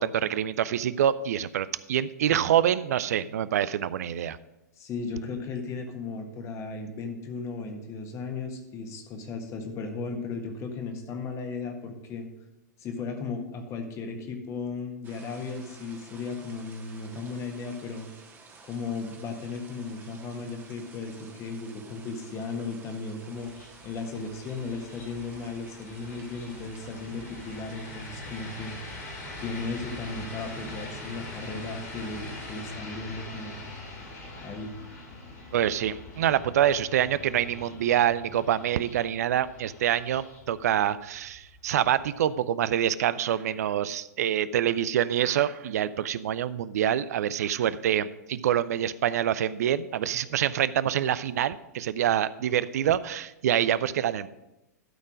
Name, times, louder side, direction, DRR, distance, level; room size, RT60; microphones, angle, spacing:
voice 1, 0.0-4.4 35.5-54.3, right 10 dB, 60° right, 17 dB, 0.4 m, -26 dB
voice 2, 4.8-12.3 12.8-18.1 18.7-23.5 23.8-28.8 29.4-33.6 34.4-34.7, left 4 dB, 30° left, 4 dB, 1.6 m, -36 dB
sound 1, 15.0-32.7, right 4 dB, 20° right, 1.5 m, -52 dB
sound 2, 23.4-42.3, left 2 dB, 60° left, 3.6 m, -43 dB
12.0 x 4.4 x 6.2 m, 0.94 s
figure-of-eight pair, 105°, 9 cm